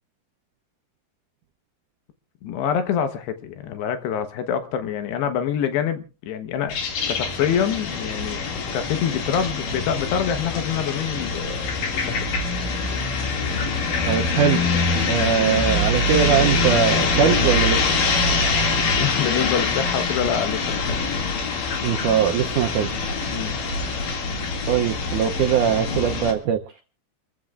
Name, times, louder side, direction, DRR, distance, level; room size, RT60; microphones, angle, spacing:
voice 1, 2.4-6.8 7.1-12.3 19.0-21.0 23.3-23.5, left 8 dB, 85° left, 3.3 m, -26 dB
sound 1, 6.7-26.3, left 3 dB, 55° left, 3.7 m, -24 dB
voice 2, 14.1-14.7 15.1-17.8 21.8-23.2 24.7-26.6, right 8 dB, 80° right, 1.8 m, -21 dB
27.5 x 14.5 x 2.5 m
omnidirectional pair, 4.7 m